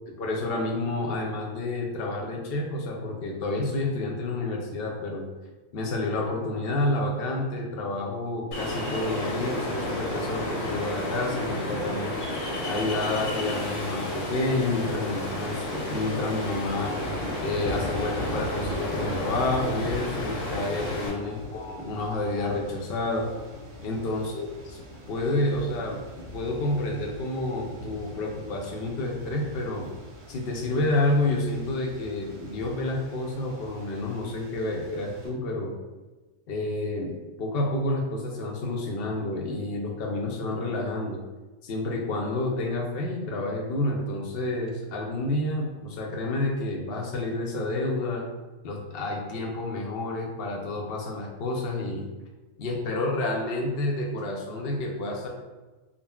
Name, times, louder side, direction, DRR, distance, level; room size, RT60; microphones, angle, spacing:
voice 1, 0.1-5.3 5.7-12.2 12.7-17.0 17.4-23.3 23.8-24.8 25.1-26.0 26.3-29.9 30.3-35.7 36.5-41.2 41.6-48.2 48.6-52.0 52.6-55.3, left 2 dB, 60° left, 0 dB, 0.7 m, -29 dB
Ocean, 8.5-21.1, left 1 dB, 85° left, 1.3 m, -32 dB
sound 1, 15.4-35.3, equal, 65° right, 1.1 m, -40 dB
3.6 x 2.0 x 2.2 m, 1.2 s
omnidirectional pair, 1.4 m